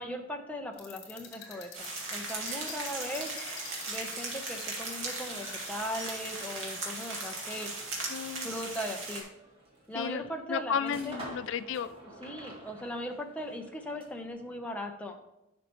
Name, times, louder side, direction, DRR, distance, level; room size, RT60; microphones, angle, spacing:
voice 1, 0.0-3.3 3.9-7.7 8.4-9.2 9.9-11.2 12.2-15.2, equal, 5° left, 2 dB, 0.8 m, -39 dB
sound 1, 0.7-7.6, left 5 dB, 55° left, 2.3 m, -47 dB
sound 2, 1.7-9.2, right 3 dB, 80° right, 2.3 m, -38 dB
sound 3, 7.5-14.3, right 1 dB, 30° right, 2.1 m, -50 dB
voice 2, 8.1-8.5 9.9-10.2 10.5-11.9, left 7 dB, 70° left, 13 dB, 0.3 m, -33 dB
10.5 x 5.9 x 3.1 m, 0.89 s
head